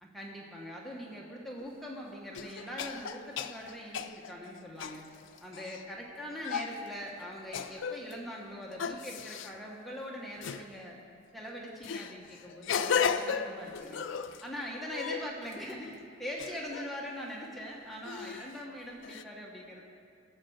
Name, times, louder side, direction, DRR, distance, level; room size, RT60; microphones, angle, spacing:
voice 1, 0.0-5.0 5.4-11.0 11.3-14.0 14.4-19.9, equal, ahead, -3 dB, 1.2 m, -42 dB
sound 1, 1.6-1.7 2.3-5.8 6.4-6.8 7.5-8.1 8.8-9.5 10.4-10.7 11.8-14.4 14.8-15.7 16.4-16.9 18.0-18.5 19.0-19.2, left 6 dB, 60° left, 0.4 m, -35 dB
14.5 x 7.6 x 6.3 m, 2.5 s
head